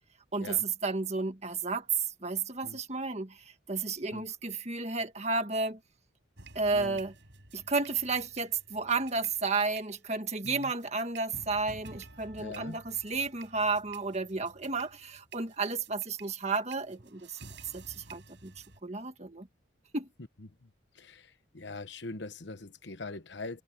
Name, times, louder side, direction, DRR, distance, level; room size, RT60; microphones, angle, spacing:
voice 1, 0.3-3.4 3.7-5.8 6.6-7.1 7.5-17.4 17.7-18.5 18.8-19.5 19.9-20.1, right 4 dB, 35° right, 1.8 m, -32 dB
sound 1, 6.4-18.8, right 4 dB, 65° right, 5.7 m, -52 dB
voice 2, 12.4-12.8 21.0-21.2 21.5-23.6, left 3 dB, 60° left, 1.1 m, -42 dB
head